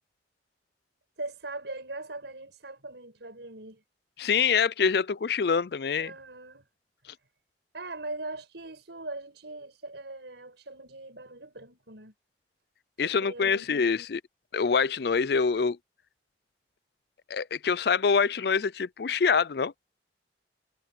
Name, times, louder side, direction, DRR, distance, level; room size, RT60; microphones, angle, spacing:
voice 1, 1.2-3.8 6.0-6.7 7.1-7.2 7.7-12.1 13.0-14.0, right 2 dB, 75° right, 5.4 m, -41 dB
voice 2, 4.2-6.1 13.0-14.2 14.5-15.8 17.3-19.7, left 5 dB, 60° left, 0.4 m, -25 dB
head